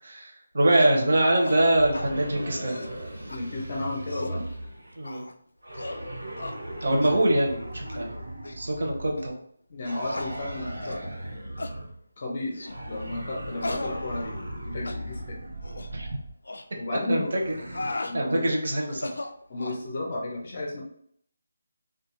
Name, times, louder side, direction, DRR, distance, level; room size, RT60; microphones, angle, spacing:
voice 1, 0.0-2.8 5.0-5.3 6.8-8.2 8.6-9.3 15.9-16.1 17.1-17.5 18.1-19.1, right 1 dB, 45° right, 1 dB, 0.6 m, -24 dB
sound 1, 0.8-1.0 1.4-1.6 1.9-2.1 2.5-2.9 3.3-3.4 3.9-4.4 5.0-5.3 5.7-6.0 6.4-6.6 7.0-7.2 7.8-8.0 8.4-8.6 9.2-9.3 10.1-10.3 10.8-11.0 11.6-11.8 12.5-12.8 13.6-14.6 14.9-15.0 15.6-15.9 16.5-16.7 17.5-18.2 18.9-19.8, left 2 dB, 70° left, 0.3 m, -36 dB
sound 2, 1.7-5.0 5.6-9.3 9.8-12.0 12.6-16.3 17.2-18.0, right 1 dB, 80° right, 0.9 m, -38 dB
voice 2, 3.3-4.5 6.9-7.3 9.7-11.1 12.2-15.4 16.8-17.3 18.1-18.5 19.5-20.8, left 2 dB, 25° left, -1 dB, 0.5 m, -33 dB
2.3 x 2.3 x 2.9 m, 0.64 s
figure-of-eight pair, 180°, 0 cm